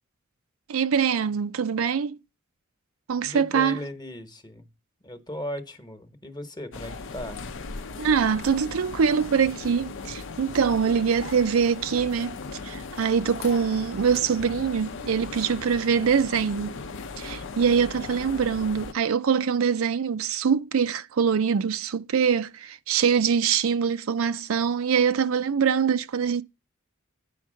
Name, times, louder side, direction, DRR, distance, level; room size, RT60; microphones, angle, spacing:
voice 1, 0.7-2.2 3.1-3.8 8.0-16.8 17.2-26.4, right 6 dB, 85° right, 0.5 m, -24 dB
voice 2, 3.2-4.7 5.0-7.4, left 1 dB, 20° left, 1.1 m, -37 dB
sound 1, 6.7-18.9, left 4 dB, 65° left, 0.7 m, -38 dB
9.2 x 4.6 x 6.3 m
head